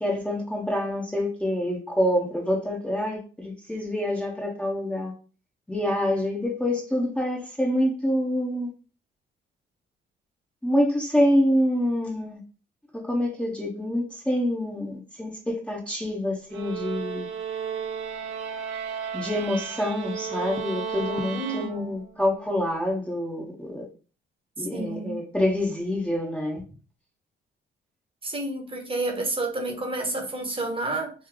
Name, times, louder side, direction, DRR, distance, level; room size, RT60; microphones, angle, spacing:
voice 1, 0.0-5.1 5.7-8.7 10.6-12.4 12.9-17.3 19.1-23.8 24.6-26.6, left 1 dB, 5° left, 0.8 m, -26 dB
sound 1, 16.5-22.2, right 7 dB, 80° right, 0.7 m, -34 dB
voice 2, 21.3-21.9 24.7-25.2 28.2-31.1, right 2 dB, 25° right, 1.0 m, -30 dB
3.2 x 2.7 x 3.6 m
cardioid pair, 90°, 20 cm